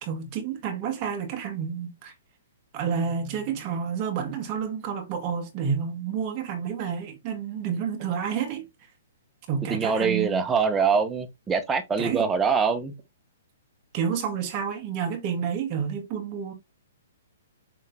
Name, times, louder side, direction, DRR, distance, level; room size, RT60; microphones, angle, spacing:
voice 1, 0.0-2.1 2.7-8.7 9.5-10.5 12.0-12.3 13.9-16.5, right 7 dB, 25° right, 2.0 m, -29 dB
voice 2, 9.7-12.9, right 5 dB, 10° right, 1.0 m, -24 dB
7.6 x 3.7 x 3.6 m
hypercardioid pair, 165°, 0 cm